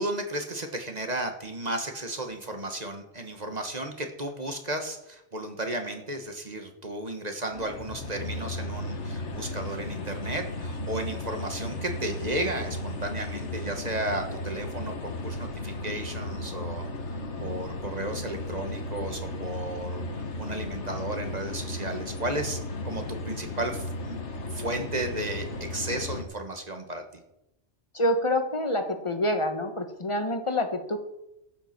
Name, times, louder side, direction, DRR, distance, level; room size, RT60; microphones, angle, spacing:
voice 1, 0.0-20.1 20.4-22.6 22.8-24.2 24.5-27.2, right 1 dB, 35° right, 5 dB, 1.7 m, -34 dB
sound 1, 7.5-26.2, left 2 dB, 80° left, 1.7 m, -35 dB
voice 2, 27.9-31.0, left 1 dB, 25° left, 6 dB, 1.5 m, -27 dB
14.0 x 8.2 x 6.0 m, 0.84 s
omnidirectional pair, 1.2 m